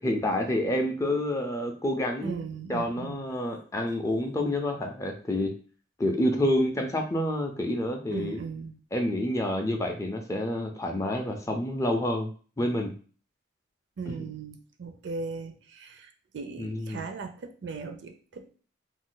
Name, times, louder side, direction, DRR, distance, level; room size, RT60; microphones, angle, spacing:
voice 1, 0.0-2.4 2.7-5.5 6.0-8.4 8.9-12.3 12.6-12.9 14.1-14.2 16.6-17.0, left 1 dB, 15° left, 2 dB, 0.4 m, -28 dB
voice 2, 2.2-3.2 8.1-8.8 14.0-16.1 16.3-18.5, right 4 dB, 65° right, 5 dB, 0.4 m, -38 dB
2.5 x 2.2 x 3.7 m, 0.40 s
head